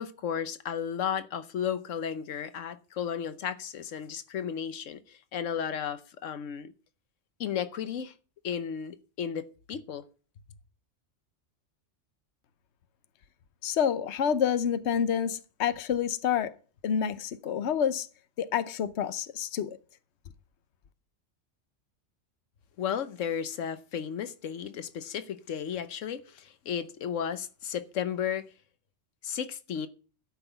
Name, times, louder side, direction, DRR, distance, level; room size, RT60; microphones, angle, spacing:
voice 1, 0.0-6.7 7.4-8.1 8.4-10.0 22.8-28.5 29.2-29.9, left 8 dB, 85° left, 1.2 m, -34 dB
voice 2, 13.6-16.5 16.8-18.1 18.4-19.8, left 8 dB, 65° left, 1.1 m, -28 dB
12.5 x 5.9 x 8.0 m
omnidirectional pair, 1.3 m